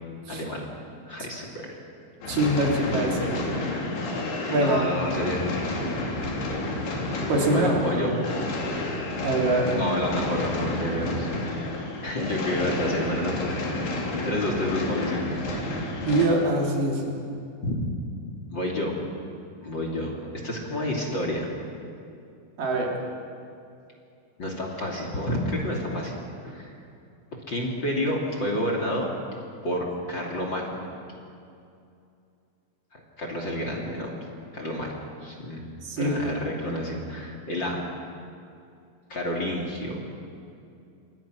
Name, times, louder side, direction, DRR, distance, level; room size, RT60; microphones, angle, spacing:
voice 1, 0.3-0.7 1.1-1.7 4.6-5.4 7.5-8.1 9.6-11.6 12.0-14.0 14.2-15.4 17.6-17.8 18.5-19.0 19.6-21.5 24.4-26.1 26.4-26.7 27.5-29.1 29.6-30.9 32.9-34.1 34.5-34.9 35.2-35.7 36.0-37.8 39.1-40.0, left 1 dB, 30° left, 0 dB, 2.9 m, -29 dB
sound 1, 2.2-16.3, left 2 dB, 85° left, 5.4 m, -30 dB
voice 2, 2.3-3.5 4.5-4.8 7.3-8.4 9.2-9.7 16.1-17.2 22.6-22.9 35.8-36.1, right 1 dB, 60° right, -1 dB, 4.7 m, -24 dB
27.5 x 22.5 x 6.3 m, 2.5 s
omnidirectional pair, 4.5 m